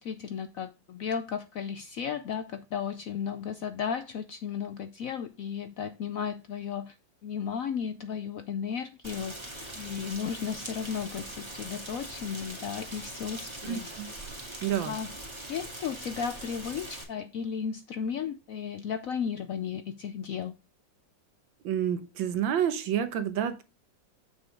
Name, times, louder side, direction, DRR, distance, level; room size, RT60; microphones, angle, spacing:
voice 1, 0.0-7.0 7.2-9.5 9.8-13.9 14.8-15.1 15.5-20.6, left 7 dB, 70° left, 0.8 m, -34 dB
Rain, 9.0-17.0, right 1 dB, 15° right, 2.2 m, -42 dB
voice 2, 13.6-14.1 14.6-15.0 21.6-23.6, right 9 dB, 85° right, 1.7 m, -29 dB
7.6 x 6.2 x 3.5 m
omnidirectional pair, 2.0 m